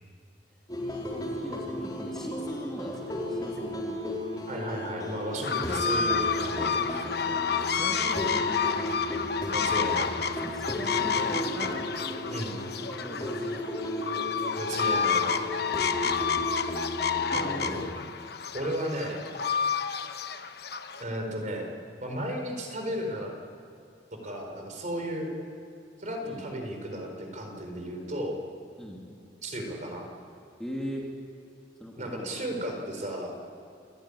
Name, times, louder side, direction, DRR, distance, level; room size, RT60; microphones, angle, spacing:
sound 1, 0.7-17.9, left 1 dB, 20° left, 4.2 m, -35 dB
voice 1, 1.1-4.1 5.6-5.8 6.7-9.2 10.3-12.0 13.0-13.4 15.7-16.1 17.2-17.9 26.2-26.5 28.8-29.1 30.6-31.1 31.8-32.4, equal, 5° left, -3 dB, 2.6 m, -40 dB
voice 2, 4.5-6.8 9.5-10.1 12.3-12.6 14.6-15.4 17.3-17.8 18.5-19.2 21.0-21.7 22.0-23.3 24.2-25.3 26.0-28.4 29.4-30.1 32.0-33.3, equal, 40° right, 2 dB, 4.4 m, -34 dB
sound 2, 5.4-21.0, left 6 dB, 55° left, 1.1 m, -30 dB
28.0 x 15.0 x 10.0 m, 2.6 s
head